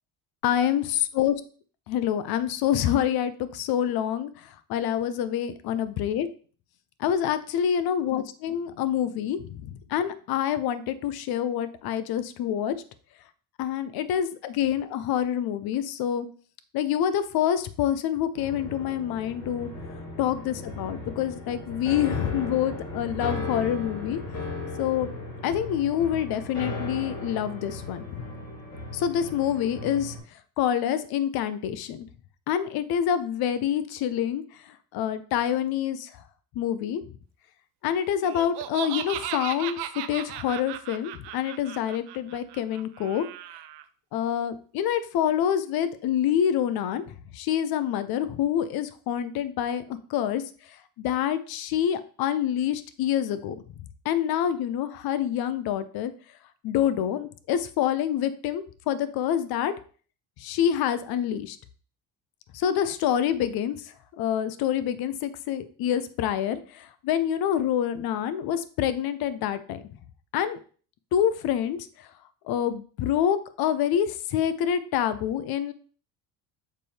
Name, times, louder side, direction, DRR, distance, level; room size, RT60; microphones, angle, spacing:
voice 1, 0.4-1.3 1.9-6.3 7.0-12.8 13.6-16.3 16.7-19.7 20.2-24.2 24.8-25.1 25.4-28.3 28.9-30.1 30.6-32.1 32.5-34.4 34.9-36.1 36.6-37.0 37.8-43.3 44.1-47.0 47.3-49.8 50.1-50.4 51.0-53.6 54.0-56.1 56.6-59.7 60.4-61.6 62.5-69.8 70.3-70.6 71.1-71.9 72.5-75.7, left 10 dB, 65° left, 12 dB, 0.7 m, -27 dB
sound 1, 18.4-30.2, left 2 dB, 45° left, 3.5 m, -36 dB
Laughter, 38.2-43.8, right 12 dB, 80° right, 0.6 m, -36 dB
7.5 x 4.2 x 3.3 m, 0.41 s
cardioid pair, 135°, 40 cm